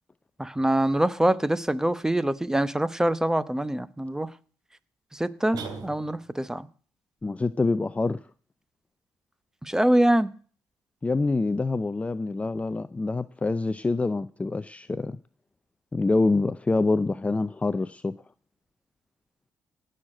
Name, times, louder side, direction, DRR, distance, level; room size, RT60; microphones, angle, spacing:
voice 1, 0.4-4.3 5.1-6.7 9.6-10.3, right 1 dB, 5° right, 0.9 m, -24 dB
sound 1, 5.5-6.4, right 4 dB, 70° right, 3.2 m, -38 dB
voice 2, 7.2-8.2 11.0-15.2 15.9-18.1, left 3 dB, 20° left, 0.5 m, -26 dB
17.5 x 6.6 x 7.6 m
cardioid pair, 85°, 7 cm